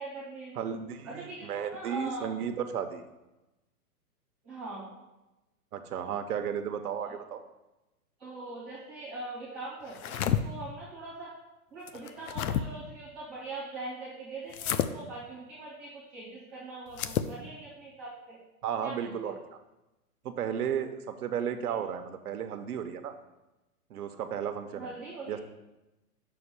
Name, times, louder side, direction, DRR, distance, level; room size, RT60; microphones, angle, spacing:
voice 1, 0.0-0.5 1.0-2.3 4.4-4.9 7.0-7.1 8.2-11.3 11.7-18.4 18.8-19.4 24.7-25.4, right 2 dB, 5° right, -12 dB, 0.3 m, -42 dB
voice 2, 0.6-3.0 5.7-7.4 18.6-19.6 20.2-23.1 23.9-24.9 25.3-25.4, right 8 dB, 70° right, 7 dB, 1.0 m, -34 dB
sound 1, 9.9-10.4 11.9-12.6 14.5-14.9 16.9-17.3, left 10 dB, 65° left, 0.6 m, -30 dB
9.4 x 6.7 x 2.2 m, 1.0 s
hypercardioid pair, 140°, 46 cm